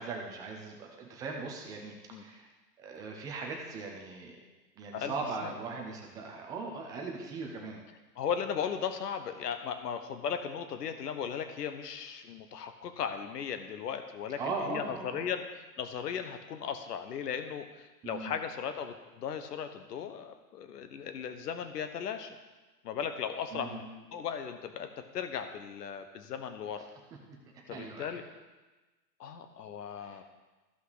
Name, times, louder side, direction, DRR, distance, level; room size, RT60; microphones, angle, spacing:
voice 1, 0.0-2.5 2.8-4.3 4.8-7.8 14.4-15.3 18.0-18.3 23.5-23.8 27.3-27.4 27.7-28.2 30.0-30.2, right 4 dB, 10° right, 1 dB, 0.4 m, -39 dB
voice 2, 8.2-22.4 22.8-26.9 27.7-28.2 29.2-30.2, left 7 dB, 70° left, 8 dB, 1.2 m, -37 dB
14.0 x 5.6 x 4.0 m, 1.2 s
hypercardioid pair, 130°, 50 cm